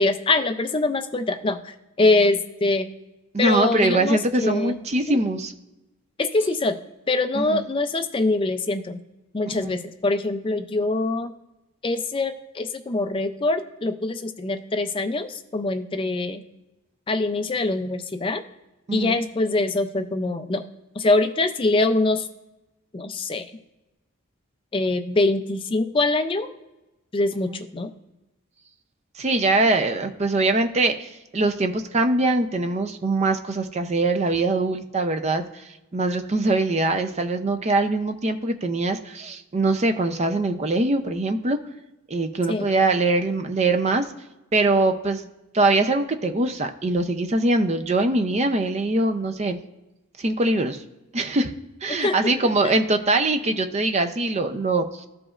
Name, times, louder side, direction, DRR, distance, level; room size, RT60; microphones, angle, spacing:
voice 1, 0.0-2.9 3.4-4.8 5.1-5.2 6.2-6.8 7.1-9.0 9.3-11.3 11.8-16.4 17.1-18.4 18.9-20.6 21.0-22.3 22.9-23.4 24.7-26.5 27.1-27.9 42.5-42.7 52.0-52.3 52.6-52.7, left 2 dB, 25° left, 7 dB, 0.4 m, -24 dB
voice 2, 3.3-5.5 7.3-7.6 9.6-9.7 18.9-19.2 29.2-35.4 35.9-41.6 42.1-44.1 44.5-45.3 45.5-49.6 50.2-50.8 51.1-51.5 51.8-55.1, right 2 dB, 30° right, 8 dB, 0.5 m, -22 dB
13.5 x 5.0 x 2.4 m, 0.99 s
head